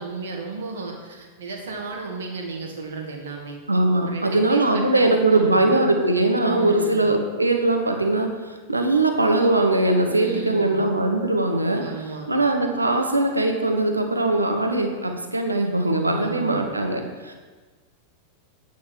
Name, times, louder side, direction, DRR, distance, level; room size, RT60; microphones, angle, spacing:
voice 1, 0.0-3.6 4.0-5.8 6.3-7.1 10.0-10.9 11.8-12.3 16.2-16.7, right 4 dB, 65° right, 1 dB, 1.8 m, -34 dB
voice 2, 3.7-11.8 12.3-17.3, right 2 dB, 80° right, 4 dB, 0.9 m, -21 dB
9.1 x 5.3 x 6.4 m, 1.4 s
figure-of-eight pair, 90°, 0 cm